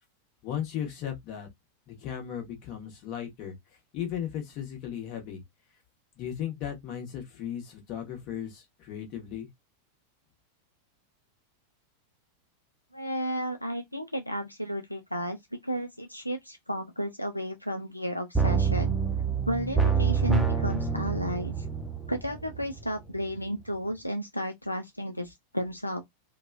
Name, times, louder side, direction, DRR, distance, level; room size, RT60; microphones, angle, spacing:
voice 1, 0.4-1.5 1.9-3.6 3.9-5.4 6.2-9.5, left 9 dB, 40° left, 1.1 m, -36 dB
voice 2, 12.9-15.4 15.6-19.0 19.5-21.7 22.1-26.0, equal, 90° left, 0.3 m, -33 dB
sound 1, 18.3-23.0 23.4-23.5, right 5 dB, 5° right, 0.7 m, -27 dB
2.8 x 2.2 x 2.4 m
figure-of-eight pair, 90°, 0 cm